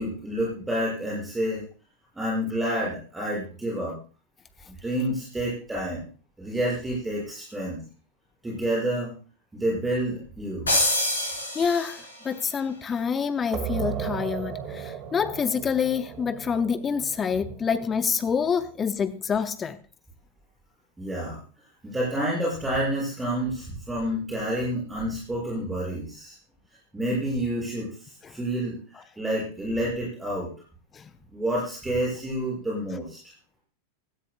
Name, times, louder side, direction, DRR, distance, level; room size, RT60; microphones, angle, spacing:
voice 1, 0.0-1.6 2.1-4.0 4.8-6.0 6.4-7.8 8.4-9.1 9.5-10.7 21.0-21.4 21.8-26.3 26.9-27.9 28.3-28.8 29.2-30.5 31.3-33.2, right 1 dB, 10° right, 6.1 m, -28 dB
sound 1, 10.7-12.3, left 1 dB, 75° left, 4.0 m, -26 dB
voice 2, 11.5-19.8 28.2-28.4 30.9-31.1, left 6 dB, 20° left, 0.6 m, -27 dB
sound 2, 13.5-18.9, right 8 dB, 35° right, 2.0 m, -36 dB
16.5 x 14.0 x 2.2 m
figure-of-eight pair, 90°, 0 cm